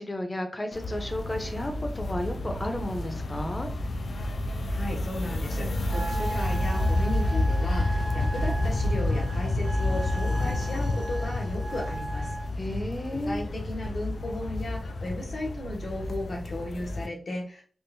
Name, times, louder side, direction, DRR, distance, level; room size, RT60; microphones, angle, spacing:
voice 1, 0.0-3.7 12.6-13.4, left 1 dB, 30° left, 5 dB, 0.6 m, -33 dB
sound 1, 0.7-17.1, left 1 dB, 90° left, 0.3 m, -29 dB
voice 2, 4.7-12.4 13.2-17.6, left 1 dB, 75° left, -2 dB, 1.0 m, -35 dB
Wind instrument woodwind instrument, 5.9-12.5, right 1 dB, 65° right, 0.6 m, -38 dB
3.6 x 2.4 x 2.6 m, 0.42 s
wide cardioid pair, 75°, 0 cm